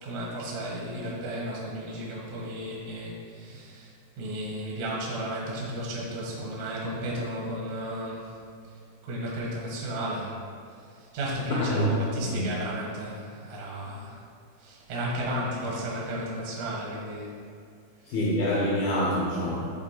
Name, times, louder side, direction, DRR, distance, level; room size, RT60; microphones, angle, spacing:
voice 1, 0.0-3.9 4.2-8.3 9.0-10.3 10.9-14.2 14.6-17.3, equal, 75° right, -5 dB, 1.6 m, -33 dB
voice 2, 11.7-12.5 18.1-19.7, equal, 75° left, -5 dB, 2.3 m, -26 dB
9.4 x 4.0 x 4.5 m, 2.3 s
omnidirectional pair, 5.6 m